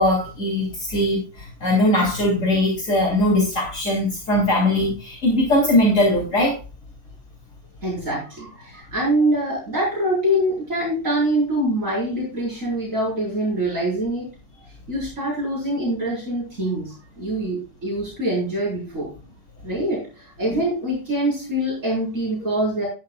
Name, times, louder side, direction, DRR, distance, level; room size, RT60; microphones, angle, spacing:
voice 1, 0.0-6.6 20.5-20.6, left 1 dB, 60° left, -2 dB, 3.6 m, -20 dB
voice 2, 7.8-14.3 14.9-19.1 19.6-22.9, right 1 dB, 60° right, -5 dB, 5.4 m, -24 dB
12.0 x 10.5 x 2.4 m, 0.33 s
omnidirectional pair, 1.5 m